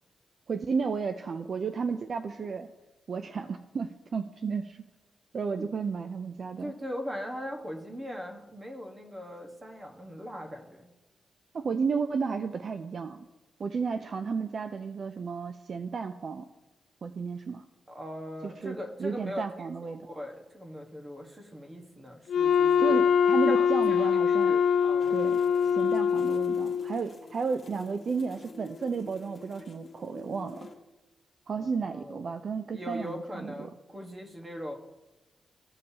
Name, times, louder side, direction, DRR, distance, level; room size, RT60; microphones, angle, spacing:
voice 1, 0.5-2.7 3.1-4.8 5.3-6.7 11.5-13.3 13.6-16.5 17.0-17.6 18.4-20.0 22.8-24.6 25.1-25.4 25.7-30.7 31.5-33.7, right 5 dB, 50° right, 8 dB, 0.4 m, -33 dB
voice 2, 6.6-10.9 17.9-23.0 23.4-25.2 31.6-32.3 32.7-34.8, equal, 20° right, 2 dB, 1.4 m, -40 dB
Wind instrument woodwind instrument, 22.3-27.0, left 7 dB, 80° left, 0.3 m, -24 dB
sound 1, 25.0-30.7, left 4 dB, 45° left, 1.4 m, -48 dB
15.0 x 5.3 x 2.8 m, 1.1 s
wide cardioid pair, 120°, 0 cm